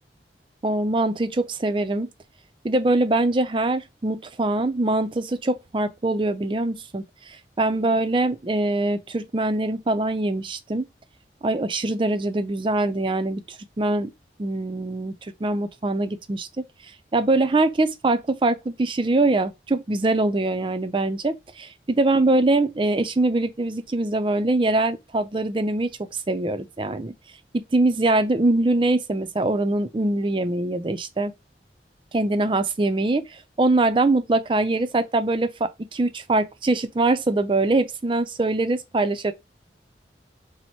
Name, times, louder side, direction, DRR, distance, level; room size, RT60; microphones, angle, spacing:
voice 1, 0.6-2.1 2.6-7.0 7.6-10.8 11.4-14.1 14.4-15.1 15.4-16.5 17.1-27.1 27.7-31.3 32.1-39.3, right 2 dB, 30° right, 0.4 m, -23 dB
4.3 x 2.1 x 4.3 m
head